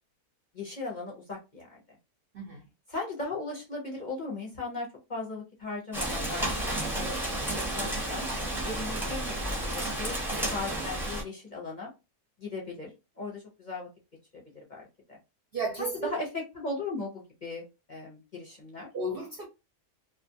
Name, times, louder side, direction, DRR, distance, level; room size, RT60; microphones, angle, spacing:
voice 1, 0.5-1.8 2.9-6.5 6.9-7.1 7.7-8.3 8.6-10.1 10.5-11.9 12.4-12.9 13.2-13.9 14.3-15.2 15.8-18.9, left 3 dB, 40° left, 0.7 m, -37 dB
Rain, 5.9-11.2, right 1 dB, ahead, 0.7 m, -32 dB
voice 2, 15.5-16.2 18.9-19.5, right 2 dB, 55° right, 0.7 m, -33 dB
2.5 x 2.4 x 2.6 m
omnidirectional pair, 1.6 m